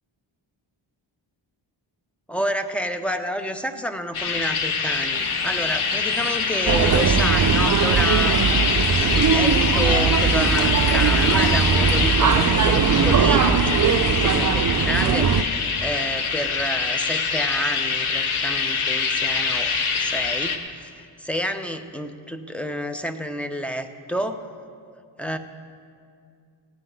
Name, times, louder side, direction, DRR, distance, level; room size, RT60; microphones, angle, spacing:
voice 1, 2.3-8.4 9.0-15.4 15.8-24.5 25.2-25.4, equal, 5° left, 7 dB, 0.6 m, -29 dB
sound 1, 4.1-20.6, left 5 dB, 90° left, 1.1 m, -24 dB
sound 2, 5.1-13.1, left 4 dB, 60° left, 1.1 m, -37 dB
sound 3, 6.7-15.4, right 6 dB, 40° right, 0.5 m, -20 dB
16.5 x 5.9 x 9.4 m, 2.3 s
wide cardioid pair, 105°, 48 cm